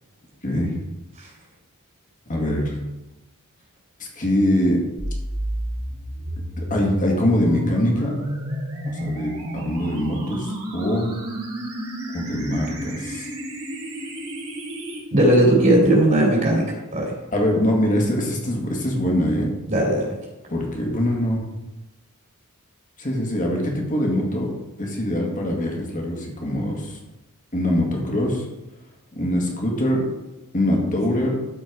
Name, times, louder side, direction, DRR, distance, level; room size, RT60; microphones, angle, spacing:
voice 1, 0.4-0.7 2.3-2.8 4.0-4.8 6.7-8.2 9.0-11.1 12.1-13.3 17.3-19.5 20.5-21.4 23.0-24.5 24.8-27.0 27.5-28.5 29.1-30.0 30.5-31.4, left 1 dB, 35° left, -1 dB, 2.0 m, -23 dB
sound 1, 5.0-15.0, equal, 75° right, 2.8 m, -31 dB
voice 2, 15.1-17.1 19.7-20.1, right 1 dB, 40° right, -3 dB, 2.6 m, -18 dB
12.5 x 4.6 x 4.7 m, 1.0 s
head